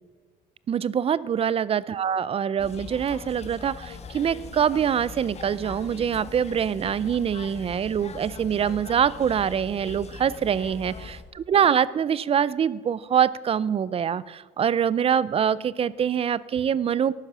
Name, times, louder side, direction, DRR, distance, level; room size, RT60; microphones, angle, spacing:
voice 1, 0.7-17.1, right 8 dB, 35° right, 19 dB, 0.4 m, -24 dB
sound 1, 2.6-11.2, left 4 dB, 40° left, 1.3 m, -41 dB
12.5 x 9.1 x 6.0 m, 1.5 s
cardioid pair, 110°, 17 cm